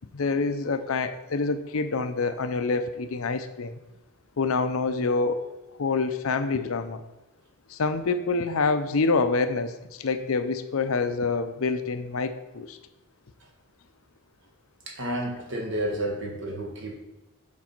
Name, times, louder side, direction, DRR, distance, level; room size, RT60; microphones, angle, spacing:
voice 1, 0.1-3.8 4.4-5.4 5.8-7.0 7.7-12.8, left 4 dB, 75° left, 10 dB, 0.6 m, -26 dB
voice 2, 14.9-17.0, right 1 dB, 60° right, 1 dB, 1.5 m, -31 dB
7.4 x 4.1 x 5.9 m, 0.99 s
head